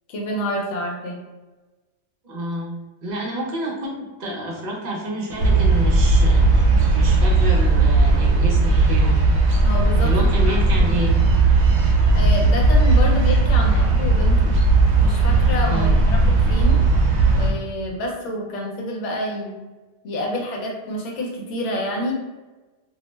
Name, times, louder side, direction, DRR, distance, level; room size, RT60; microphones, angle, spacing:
voice 1, 0.1-1.2 9.6-10.9 12.1-14.5 15.0-16.8 17.3-19.5 20.0-22.1, left 1 dB, 70° left, -1 dB, 1.0 m, -28 dB
voice 2, 2.2-2.8 3.0-9.2 10.0-11.2 15.7-16.0, equal, 45° right, -2 dB, 0.6 m, -29 dB
sound 1, 5.4-17.5, right 3 dB, 70° right, 0.8 m, -16 dB
2.5 x 2.0 x 3.1 m, 1.2 s
omnidirectional pair, 1.3 m